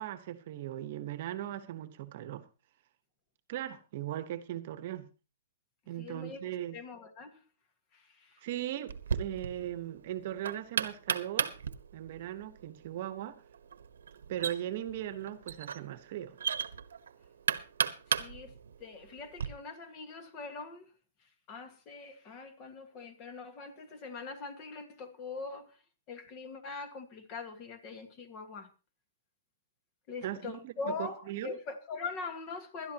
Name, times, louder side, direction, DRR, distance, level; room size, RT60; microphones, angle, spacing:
voice 1, 0.0-2.5 3.5-5.1 5.9-6.8 8.4-11.5 11.9-13.4 14.3-16.4 30.2-30.7 31.0-31.5, right 12 dB, 40° right, 1.2 m, -38 dB
voice 2, 6.0-7.4 7.9-8.4 18.1-20.9 21.2-25.8 26.1-28.7 30.1-32.9, left 4 dB, 25° left, 1.7 m, -43 dB
Knock, 8.9-19.5, right 7 dB, 85° right, 1.2 m, -36 dB
20.5 x 12.0 x 2.9 m
hypercardioid pair, 165°, 0 cm